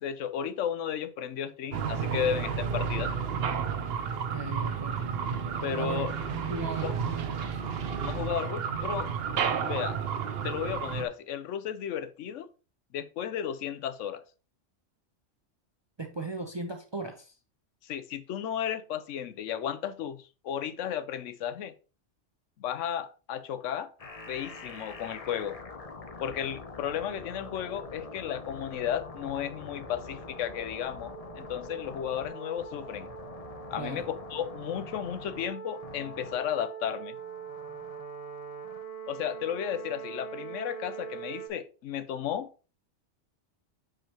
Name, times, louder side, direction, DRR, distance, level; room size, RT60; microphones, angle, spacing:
voice 1, 0.0-3.1 5.6-6.1 6.8-6.9 8.0-9.1 9.6-10.0 10.4-12.5 12.9-14.2 17.8-20.2 20.4-21.7 22.6-23.9 24.3-25.6 26.2-33.1 33.7-34.0 34.3-37.2 39.1-42.5, left 9 dB, 80° left, 1.0 m, -34 dB
sound 1, 1.7-11.1, right 6 dB, 60° right, 0.9 m, -31 dB
voice 2, 4.3-5.0 5.8-7.6 16.0-17.4 33.7-34.0, right 3 dB, 35° right, 0.4 m, -37 dB
sound 2, 24.0-41.5, right 2 dB, 35° left, 0.7 m, -42 dB
7.4 x 5.0 x 2.9 m
omnidirectional pair, 1.3 m